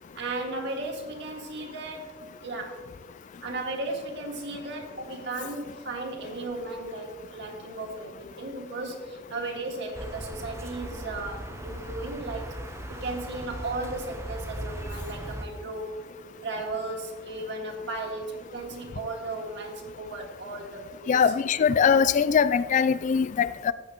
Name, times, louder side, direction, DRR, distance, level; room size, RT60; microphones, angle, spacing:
voice 1, 0.2-2.2 2.4-2.8 3.4-12.6 12.9-16.0 16.4-21.3, right 2 dB, 65° right, 1.9 m, -35 dB
sound 1, 9.9-15.5, right 1 dB, 15° right, 0.7 m, -38 dB
voice 2, 21.1-23.7, left 6 dB, 40° left, 0.3 m, -22 dB
14.5 x 8.6 x 3.0 m
head